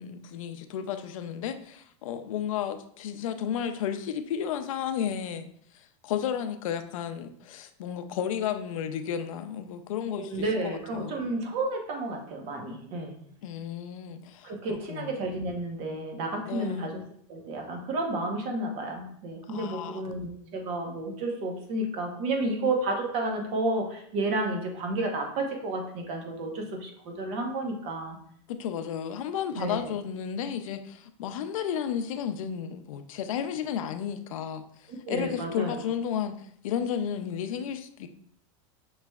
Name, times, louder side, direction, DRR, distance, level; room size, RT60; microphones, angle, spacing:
voice 1, 0.0-5.5 5.7-11.2 13.4-15.1 16.5-16.9 19.5-20.0 28.5-38.1, left 8 dB, 85° left, 9 dB, 0.5 m, -33 dB
voice 2, 10.2-13.1 14.4-17.0 17.3-28.2 29.6-29.9 35.0-35.7, right 2 dB, 40° right, 2 dB, 0.9 m, -31 dB
5.9 x 3.1 x 2.3 m, 0.64 s
supercardioid pair, 160°, 17 cm